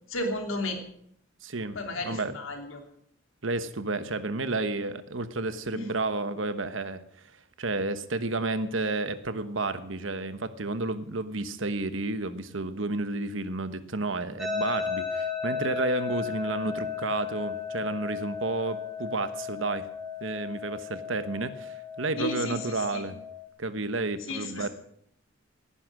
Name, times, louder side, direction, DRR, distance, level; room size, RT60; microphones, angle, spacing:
voice 1, 0.1-0.8 1.7-2.8 5.7-5.9 22.2-23.0 24.3-24.6, left 2 dB, 80° left, 4 dB, 3.0 m, -33 dB
voice 2, 1.4-2.4 3.4-7.3 7.6-19.9 20.2-23.2 23.6-24.7, right 2 dB, 70° right, 11 dB, 1.2 m, -31 dB
sound 1, 14.4-23.4, left 6 dB, ahead, 1.9 m, -35 dB
17.5 x 10.0 x 6.4 m, 0.69 s
head